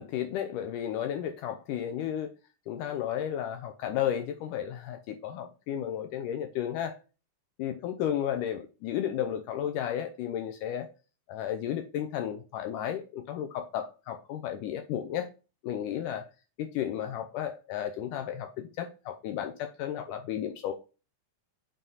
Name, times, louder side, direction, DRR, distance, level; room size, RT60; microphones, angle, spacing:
voice 1, 0.0-2.3 2.7-6.9 7.6-10.9 11.3-15.3 15.6-16.2 16.6-20.7, left 10 dB, 80° left, 2.1 m, -33 dB
9.1 x 4.0 x 4.0 m
omnidirectional pair, 4.1 m